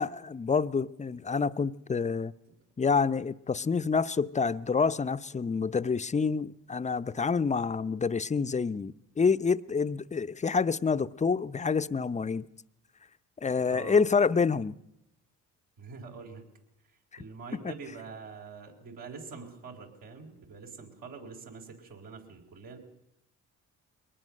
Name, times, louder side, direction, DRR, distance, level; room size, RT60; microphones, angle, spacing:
voice 1, 0.0-2.3 2.8-12.5 13.4-14.8, left 5 dB, 20° left, 0.7 m, -27 dB
voice 2, 13.7-14.0 15.8-16.4 17.2-22.8, right 4 dB, 75° right, 4.3 m, -45 dB
22.0 x 19.0 x 6.5 m
supercardioid pair, 65°, 35 cm